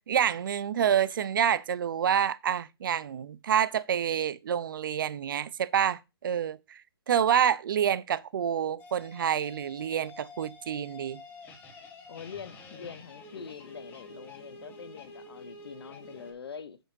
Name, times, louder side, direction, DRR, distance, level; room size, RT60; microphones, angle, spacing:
voice 1, 0.0-6.8 7.1-11.2, right 9 dB, 55° right, 0.6 m, -28 dB
sound 1, 8.8-16.3, left 2 dB, 15° left, 1.3 m, -48 dB
voice 2, 12.1-16.8, left 6 dB, 70° left, 1.0 m, -44 dB
9.2 x 6.3 x 2.7 m
hypercardioid pair, 155°, 14 cm